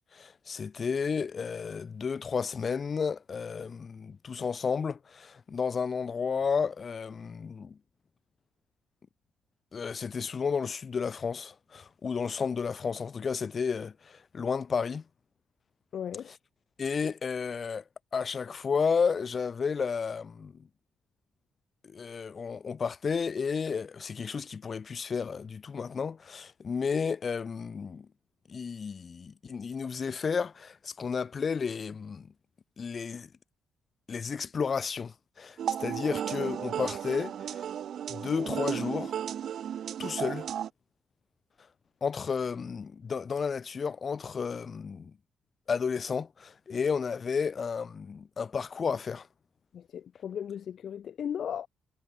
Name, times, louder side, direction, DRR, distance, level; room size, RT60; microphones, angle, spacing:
voice 1, 0.1-7.8 9.7-15.0 16.3-16.4 16.8-17.8 18.1-20.7 21.8-28.1 28.5-32.3 32.8-33.3 34.1-37.7 38.1-39.1 40.0-40.5 42.0-45.1 45.7-49.3, left 5 dB, 40° left, 1.3 m, -32 dB
voice 2, 15.9-16.3 49.7-51.7, left 8 dB, 60° left, 0.4 m, -36 dB
sound 1, 35.6-40.7, right 9 dB, 65° right, 0.5 m, -34 dB
cardioid pair, 90°, 0 cm